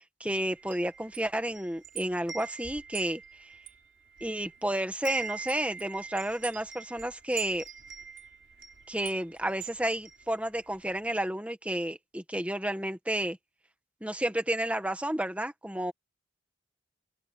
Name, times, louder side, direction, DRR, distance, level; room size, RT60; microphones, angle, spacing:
voice 1, 0.0-3.5 4.2-7.6 8.9-13.4 14.0-15.9, right 1 dB, 5° right, 1.4 m, -31 dB
Wind chime, 0.6-4.6 4.9-10.8, right 7 dB, 60° right, 5.3 m, -43 dB
head